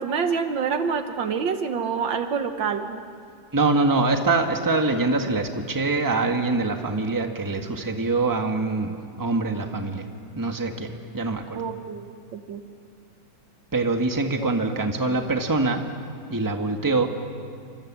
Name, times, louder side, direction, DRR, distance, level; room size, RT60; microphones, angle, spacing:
voice 1, 0.0-3.0 11.5-12.6 14.4-14.5, right 6 dB, 70° right, 7 dB, 1.9 m, -27 dB
voice 2, 3.5-8.9 9.2-10.0 10.4-10.9 11.1-11.6 13.7-15.8 16.3-17.1, right 3 dB, 10° right, 4 dB, 1.5 m, -24 dB
29.0 x 25.5 x 7.5 m, 2.3 s
omnidirectional pair, 2.1 m